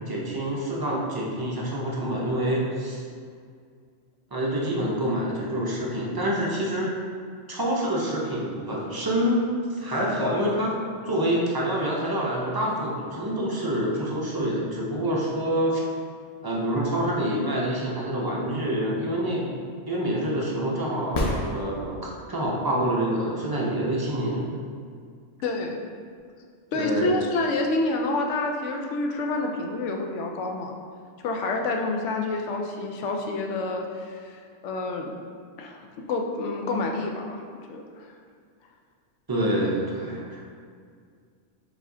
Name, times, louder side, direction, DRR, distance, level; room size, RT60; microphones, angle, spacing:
voice 1, 0.1-3.0 4.3-6.9 7.5-10.7 11.1-15.8 16.4-19.5 19.9-24.5 26.7-27.1 39.3-40.4, right 1 dB, 35° right, -4 dB, 0.4 m, -27 dB
sound 1, 21.1-22.3 26.1-26.2, left 1 dB, 40° left, 0.4 m, -28 dB
voice 2, 25.4-25.8 26.7-30.7 31.2-34.4 34.6-35.2 35.6-35.8 36.1-37.4 37.7-38.1, left 2 dB, 75° left, 2 dB, 0.9 m, -28 dB
4.7 x 4.2 x 2.6 m, 2.1 s
omnidirectional pair, 1.3 m